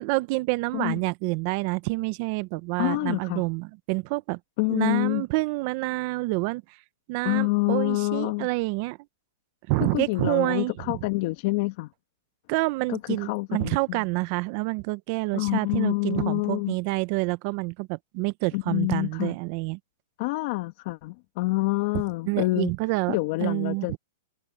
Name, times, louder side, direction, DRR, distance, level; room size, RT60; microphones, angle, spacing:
voice 1, 0.0-4.4 4.7-6.6 7.1-9.0 9.7-10.9 12.5-19.8 22.2-24.0, right 24 dB, 45° right, 0.8 m, -28 dB
voice 2, 2.8-3.4 4.6-5.2 7.2-8.5 9.8-11.9 12.9-14.0 15.3-16.7 18.5-19.3 20.2-22.7 23.1-23.9, left 23 dB, 45° left, 1.8 m, -27 dB
hypercardioid pair, 150°, 0 cm